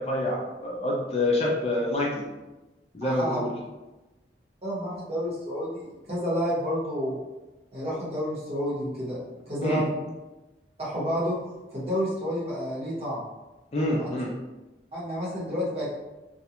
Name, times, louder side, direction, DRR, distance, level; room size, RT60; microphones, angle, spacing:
voice 1, 0.0-2.1 2.9-3.5 9.6-9.8 13.7-14.3, left 1 dB, 35° left, -3 dB, 0.4 m, -26 dB
voice 2, 3.0-3.4 4.6-7.2 7.7-9.2 9.5-9.9 10.8-11.4 11.7-13.2 13.9-14.1 14.9-15.9, equal, 35° right, -8 dB, 0.9 m, -30 dB
2.4 x 2.2 x 2.8 m, 1.1 s
head